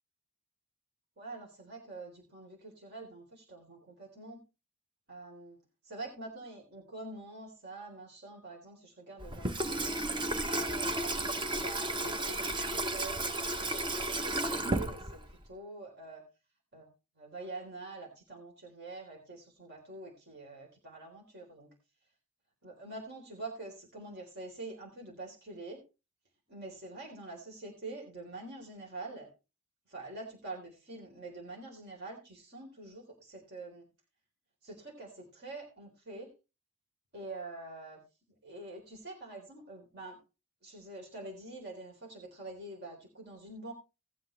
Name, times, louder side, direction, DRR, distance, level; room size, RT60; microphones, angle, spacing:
voice 1, 1.2-4.4 5.1-5.6 5.8-10.0 10.4-16.2 16.7-16.9 17.2-21.7 22.6-25.8 26.5-29.3 29.9-33.8 34.6-36.3 37.1-38.0 38.4-40.2 40.6-43.7, right 2 dB, 50° right, -1 dB, 3.8 m, -46 dB
Water tap faucet / Sink (filling or washing), 9.2-15.5, right 1 dB, 20° right, 0.8 m, -33 dB
18.5 x 7.9 x 3.3 m, 0.29 s
head